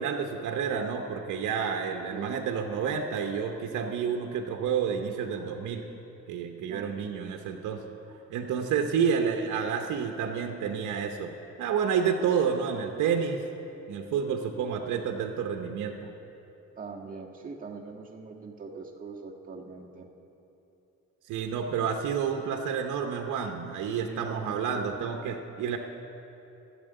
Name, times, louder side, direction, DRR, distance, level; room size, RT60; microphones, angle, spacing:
voice 1, 0.0-5.8 6.3-7.8 8.3-13.4 13.9-15.9 21.3-25.8, right 7 dB, 80° right, 4 dB, 0.9 m, -29 dB
voice 2, 2.1-2.4 6.7-7.3 16.8-20.1 24.0-24.9, right 4 dB, 25° right, -2 dB, 1.7 m, -42 dB
12.5 x 7.4 x 9.1 m, 3.0 s
cardioid pair, 90°, 30 cm